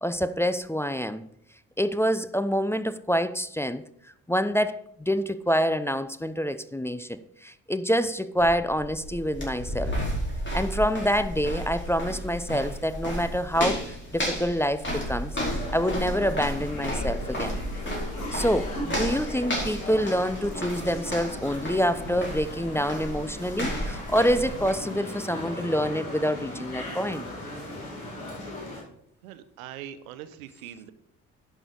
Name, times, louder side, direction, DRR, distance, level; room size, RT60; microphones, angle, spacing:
voice 1, 0.0-1.3 1.8-3.8 4.3-10.0 10.5-17.6 18.3-27.2, equal, 5° left, 0.6 m, -27 dB
sound 1, 8.4-24.7, equal, 25° left, 4.5 m, -33 dB
sound 2, 15.3-28.8, left 1 dB, 85° left, 2.4 m, -38 dB
voice 2, 29.2-30.9, right 11 dB, 80° right, 0.8 m, -42 dB
11.0 x 6.4 x 5.3 m
figure-of-eight pair, 45°, 42 cm